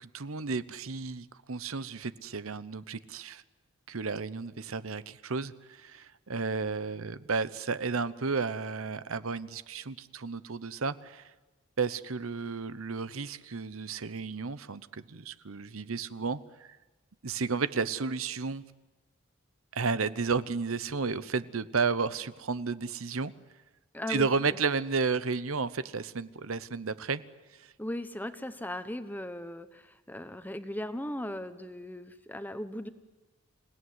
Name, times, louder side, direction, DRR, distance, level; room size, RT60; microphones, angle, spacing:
voice 1, 0.0-3.4 3.9-11.3 11.8-16.8 17.2-18.6 19.7-23.3 24.1-27.2 27.6-27.7, right 4 dB, 85° right, 15 dB, 0.9 m, -32 dB
voice 2, 23.9-24.6 27.8-32.9, left 1 dB, 10° left, 10 dB, 1.0 m, -38 dB
27.0 x 17.5 x 9.6 m, 1.2 s
head